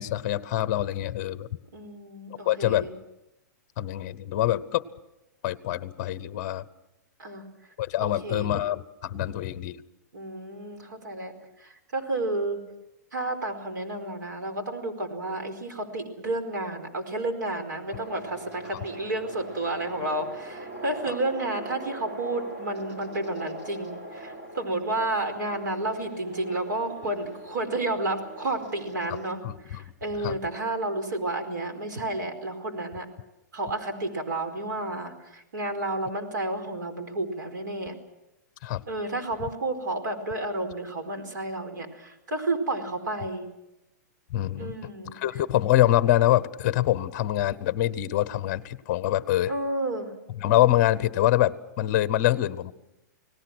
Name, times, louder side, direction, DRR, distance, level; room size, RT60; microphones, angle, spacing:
voice 1, 0.0-1.5 2.4-2.9 3.8-4.8 5.4-6.6 7.8-9.8 29.1-29.2 29.4-29.8 30.2-30.4 38.6-38.8 44.3-44.7 45.1-49.5 50.4-52.7, left 13 dB, 30° left, 16 dB, 0.8 m, -25 dB
voice 2, 1.7-2.9 7.2-7.5 8.0-8.5 10.1-11.3 11.6-12.6 13.1-33.1 33.5-37.9 38.9-43.5 44.5-45.1 49.5-50.1, right 2 dB, 85° right, 7 dB, 4.6 m, -31 dB
sound 1, 17.9-29.3, right 1 dB, 35° right, 3.5 m, -41 dB
29.5 x 18.5 x 6.2 m, 0.92 s
hypercardioid pair, 175°, 10 cm